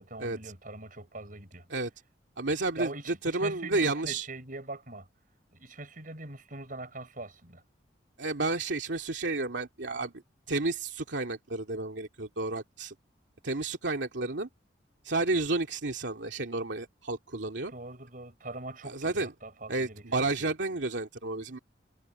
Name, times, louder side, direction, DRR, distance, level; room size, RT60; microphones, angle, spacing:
voice 1, 0.0-1.7 2.8-5.1 5.5-7.6 17.7-20.1 20.4-20.5, right 2 dB, 45° right, 5.3 m, -42 dB
voice 2, 2.4-2.9 3.2-4.3 8.2-10.1 10.5-12.9 13.4-14.5 15.0-17.7 18.8-19.3 19.7-21.6, right 2 dB, 75° right, 2.4 m, -31 dB
head